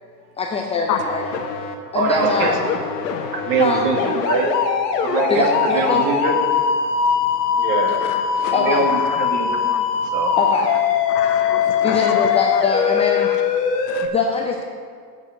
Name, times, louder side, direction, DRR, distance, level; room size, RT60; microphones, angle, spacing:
voice 1, 0.4-1.3 1.9-2.5 3.6-3.9 5.3-6.1 8.5-8.9 10.4-10.7 11.8-13.3 14.1-14.6, left 4 dB, 15° left, 1 dB, 0.5 m, -22 dB
sound 1, 1.0-1.7 2.2-14.1, left 7 dB, 75° left, 1.3 m, -21 dB
voice 2, 1.9-2.7 3.3-4.5 5.0-5.5 5.7-6.3 7.6-8.0 8.4-9.7 10.1-10.4, right 3 dB, 40° right, 2 dB, 1.8 m, -22 dB
voice 3, 8.1-8.5 9.7-9.8 11.1-12.3 13.9-14.1, left 10 dB, 40° left, 7 dB, 0.8 m, -28 dB
7.9 x 6.1 x 7.7 m, 2.1 s
hypercardioid pair, 110°, 50 cm